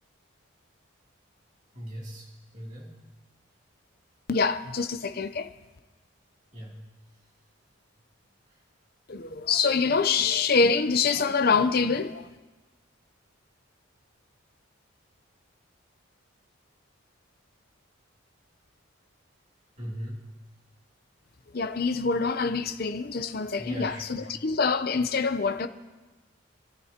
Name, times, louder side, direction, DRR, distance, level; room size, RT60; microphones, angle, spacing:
voice 1, 1.7-2.3 2.5-2.9 6.5-6.8 19.8-20.2 23.5-24.4, equal, 35° right, 2.8 m, -39 dB
voice 2, 4.3-5.5 9.1-12.3 21.5-25.7, left 5 dB, 45° left, 0.6 m, -25 dB
27.5 x 12.5 x 2.9 m
head